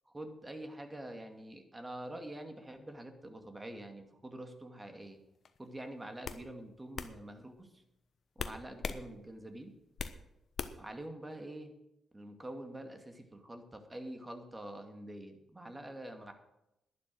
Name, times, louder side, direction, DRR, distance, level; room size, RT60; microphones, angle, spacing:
voice 1, 0.1-5.2 5.6-7.8 8.4-9.7 10.8-11.7 12.1-16.3, right 1 dB, 20° right, 5 dB, 2.4 m, -46 dB
sound 1, 5.5-5.7 6.2-6.4 7.0-7.1 8.4-9.0 9.4-10.2 10.6-10.9, left 5 dB, 55° left, 1.0 m, -39 dB
11.5 x 10.5 x 6.5 m, 0.88 s
hypercardioid pair, 40°, 0 cm